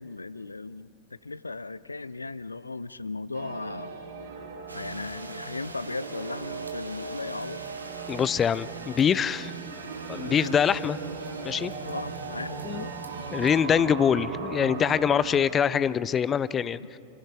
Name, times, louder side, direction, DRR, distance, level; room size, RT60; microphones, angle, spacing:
voice 1, 0.0-3.9 4.7-7.6 10.2-10.6 11.8-13.3 13.8-13.9 16.8-16.9, left 3 dB, 80° left, 18 dB, 0.5 m, -37 dB
sound 1, 3.3-15.5, right 5 dB, 60° right, 2.0 m, -38 dB
sound 2, 4.7-13.6, right 2 dB, 80° right, 1.3 m, -46 dB
voice 2, 8.1-9.5 10.1-11.0 11.4-11.7 12.6-12.8 13.3-16.8, left 8 dB, 25° left, 18 dB, 0.5 m, -24 dB
27.0 x 26.0 x 4.7 m, 2.7 s
figure-of-eight pair, 90°, 0 cm